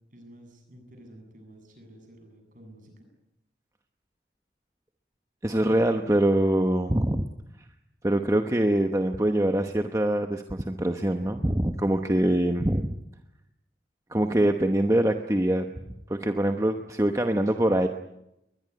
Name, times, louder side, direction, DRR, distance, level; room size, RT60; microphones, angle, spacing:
voice 1, 0.1-3.1, right 1 dB, 45° right, 4 dB, 7.8 m, -51 dB
voice 2, 5.4-7.3 8.0-12.9 14.1-15.7 16.1-17.9, right 1 dB, 15° right, 6 dB, 0.9 m, -24 dB
21.5 x 21.0 x 9.4 m, 0.88 s
head